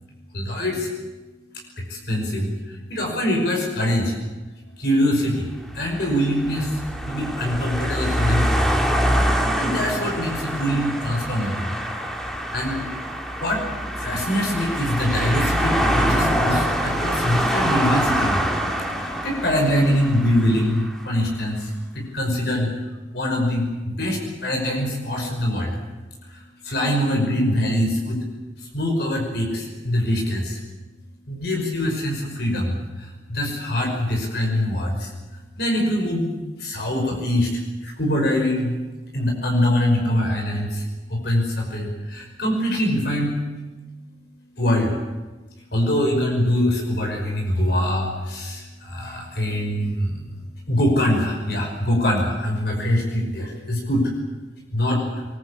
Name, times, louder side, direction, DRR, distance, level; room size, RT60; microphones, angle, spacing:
voice 1, 0.3-0.9 1.8-4.2 4.8-6.8 7.1-8.8 9.3-11.7 12.5-12.8 13.3-13.6 14.0-18.5 18.9-22.7 23.1-25.8 26.3-28.2 28.6-30.6 31.3-35.1 35.6-36.3 36.6-38.7 39.1-43.4 44.6-44.9 45.7-50.3 50.7-54.1 54.7-55.3, left 1 dB, 60° left, 1 dB, 5.7 m, -23 dB
sound 1, 5.6-21.0, equal, ahead, 2.6 m, -25 dB
23.0 x 21.5 x 8.5 m, 1.2 s
head